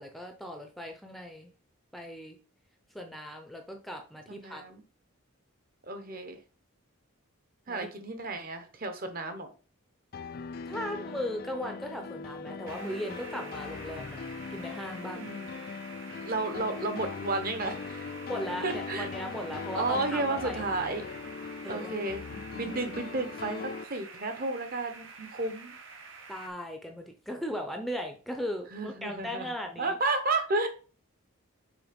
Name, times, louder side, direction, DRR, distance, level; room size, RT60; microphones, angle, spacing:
voice 1, 0.0-1.5 1.9-2.4 2.9-4.6 7.7-7.9 10.6-15.2 18.3-20.6 21.6-22.1 22.6-22.7 26.3-30.0, equal, ahead, 3 dB, 0.6 m, -38 dB
voice 2, 4.4-4.8 5.9-6.4 7.7-9.5 15.1-15.6 16.1-18.1 18.6-19.1 19.7-21.0 21.7-25.7 28.7-29.5 29.8-30.7, right 3 dB, 40° right, 7 dB, 1.1 m, -32 dB
sound 1, 10.1-23.8, left 5 dB, 45° left, 0.3 m, -40 dB
sound 2, 12.7-26.5, right 4 dB, 60° right, 1.3 m, -48 dB
6.2 x 3.9 x 5.2 m, 0.37 s
head